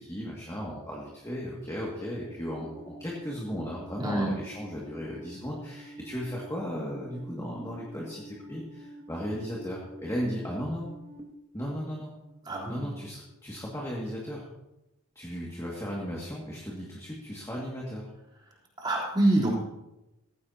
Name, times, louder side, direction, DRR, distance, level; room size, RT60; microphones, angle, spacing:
voice 1, 0.0-10.9 11.5-12.1 12.7-14.5 15.2-18.1, equal, 15° left, -4 dB, 2.2 m, -36 dB
Alarm, 2.3-11.2, right 1 dB, 40° right, 2.0 m, -48 dB
voice 2, 4.0-4.3 12.5-12.8 18.8-19.6, right 1 dB, 20° right, -4 dB, 3.7 m, -25 dB
18.0 x 15.0 x 2.9 m, 0.93 s
head